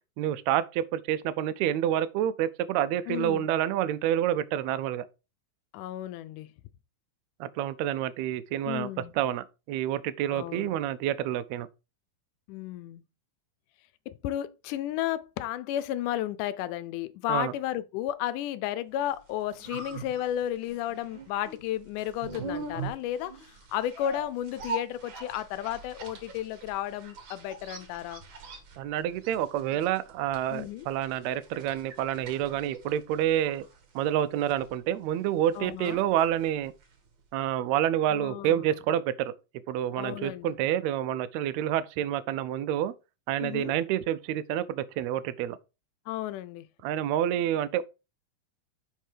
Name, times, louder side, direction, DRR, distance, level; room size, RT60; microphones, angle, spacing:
voice 1, 0.2-5.1 7.4-8.9 9.2-11.7 17.3-17.5 28.8-33.7 34.0-36.7 37.3-39.3 39.7-42.9 43.3-45.6 46.8-47.8, right 11 dB, 75° right, 1.7 m, -28 dB
voice 2, 3.1-3.5 5.7-6.5 8.7-9.1 10.3-10.7 12.5-13.0 14.1-28.2 30.5-30.9 35.6-36.0 38.1-38.8 40.0-40.6 43.4-43.7 46.1-46.7, left 12 dB, 80° left, 2.1 m, -33 dB
sound 1, 19.1-37.1 37.4-37.5, right 4 dB, 50° right, 1.6 m, -43 dB
6.2 x 5.6 x 4.9 m
omnidirectional pair, 3.7 m